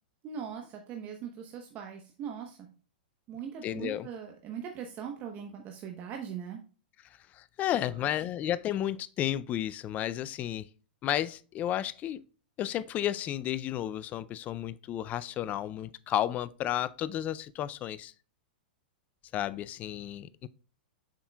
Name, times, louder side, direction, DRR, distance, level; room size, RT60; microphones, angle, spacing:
voice 1, 0.2-2.7 3.3-6.7 7.8-8.2, right 7 dB, 35° right, 1.0 m, -41 dB
voice 2, 3.6-4.1 7.3-10.7 11.0-12.2 12.6-18.1 19.3-20.5, left 12 dB, 30° left, 0.4 m, -32 dB
7.5 x 6.0 x 2.3 m
hypercardioid pair, 115°, 5 cm